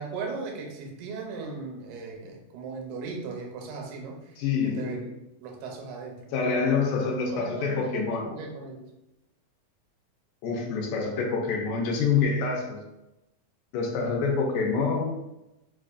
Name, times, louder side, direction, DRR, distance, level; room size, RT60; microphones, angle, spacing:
voice 1, 0.0-5.1 5.4-6.3 7.0-8.8, right 4 dB, 75° right, 0 dB, 2.0 m, -38 dB
voice 2, 4.4-5.1 6.3-8.3 10.4-12.8 13.7-15.2, left 5 dB, 85° left, 0 dB, 2.2 m, -26 dB
5.0 x 2.4 x 2.4 m, 0.94 s
omnidirectional pair, 3.6 m